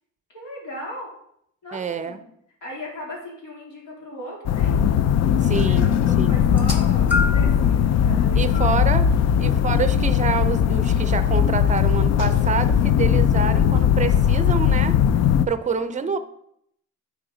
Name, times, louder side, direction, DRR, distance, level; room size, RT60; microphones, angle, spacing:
voice 1, 0.3-1.1 1.6-2.3 2.6-4.8 5.6-9.5 16.0-16.2, left 1 dB, 70° left, -3 dB, 3.1 m, -38 dB
voice 2, 1.7-2.2 5.4-6.4 8.4-9.1 9.4-15.0 15.5-16.2, right 5 dB, 25° right, 11 dB, 0.6 m, -27 dB
sound 1, 4.5-15.5, left 8 dB, 55° left, 0.4 m, -19 dB
sound 2, 6.5-7.6 8.5-8.7 9.8-9.9, left 3 dB, 5° right, 1.2 m, -27 dB
9.1 x 4.5 x 3.9 m, 0.73 s
cardioid pair, 105°, 32 cm